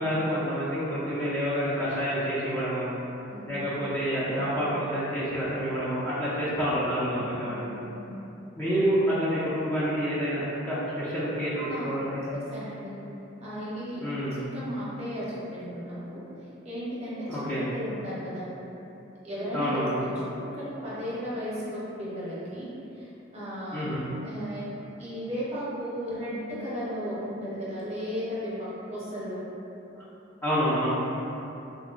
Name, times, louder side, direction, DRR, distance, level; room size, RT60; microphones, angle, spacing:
voice 1, 0.0-2.9 3.5-7.7 8.5-12.3 14.0-14.4 17.3-17.6 19.5-20.0 23.7-24.0 30.0-30.1 30.4-30.9, equal, 10° left, -11 dB, 0.4 m, -28 dB
voice 2, 3.3-3.6 7.1-7.3 7.7-8.2 11.5-11.9 12.3-12.9 13.4-14.1 14.5-16.2 16.6-18.5 19.2-22.7 22.9-23.9 24.2-24.7 25.0-29.4, equal, 30° right, -9 dB, 0.7 m, -35 dB
3.7 x 2.0 x 2.3 m, 2.9 s
head